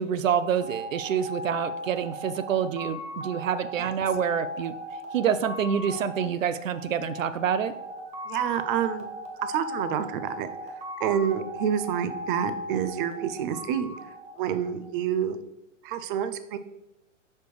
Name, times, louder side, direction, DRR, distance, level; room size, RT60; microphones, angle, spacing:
voice 1, 0.0-4.7 5.1-7.7, right 8 dB, 90° right, 13 dB, 0.5 m, -27 dB
sound 1, 0.6-15.0, left 1 dB, 15° right, 0.9 m, -38 dB
voice 2, 8.3-9.1 9.4-10.5 11.0-14.0 14.4-15.4 15.8-16.6, right 9 dB, 45° right, 12 dB, 0.5 m, -28 dB
6.5 x 5.2 x 3.2 m, 0.92 s
hypercardioid pair, 120°, 38 cm